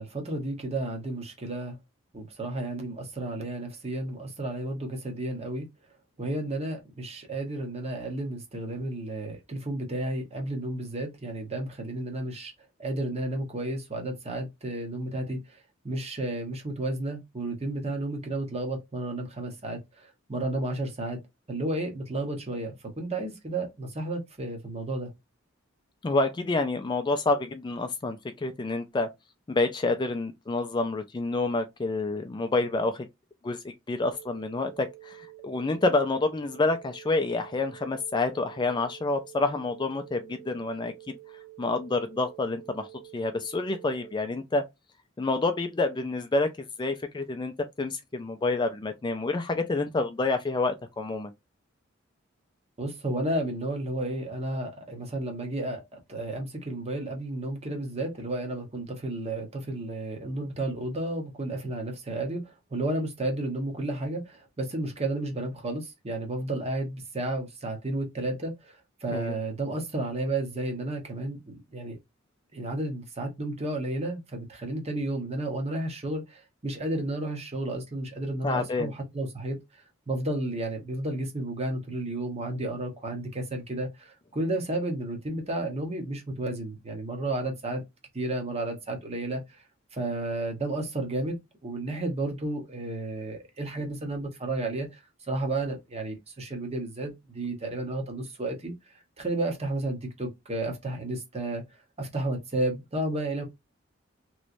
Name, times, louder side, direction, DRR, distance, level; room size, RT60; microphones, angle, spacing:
voice 1, 0.0-1.8 2.1-5.7 6.2-12.5 12.8-15.6 15.8-21.2 21.5-25.1 52.8-72.0 72.5-87.8 88.1-89.6 89.9-91.4 91.6-95.0 95.3-98.7 99.2-101.6 102.0-103.4, right 2 dB, 30° right, 1.0 m, -32 dB
voice 2, 26.0-29.1 29.5-33.1 33.4-41.2 41.6-42.9 43.1-44.6 45.2-51.3 69.1-69.4 78.4-78.9, left 3 dB, 25° left, 0.4 m, -28 dB
sound 1, 34.1-44.1, right 18 dB, ahead, 1.1 m, -49 dB
3.1 x 3.0 x 2.5 m
head